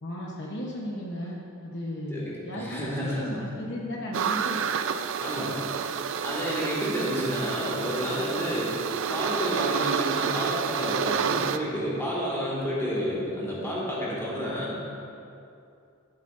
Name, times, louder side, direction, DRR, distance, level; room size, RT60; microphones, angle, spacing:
voice 1, 0.0-4.6, left 1 dB, 55° left, -3 dB, 0.9 m, -35 dB
voice 2, 2.1-3.4 5.2-5.6 6.2-8.8 9.1-14.8, equal, 10° left, -6 dB, 2.0 m, -30 dB
sound 1, 4.1-11.6, right 7 dB, 60° right, 0.4 m, -29 dB
13.0 x 7.3 x 2.6 m, 2.6 s
head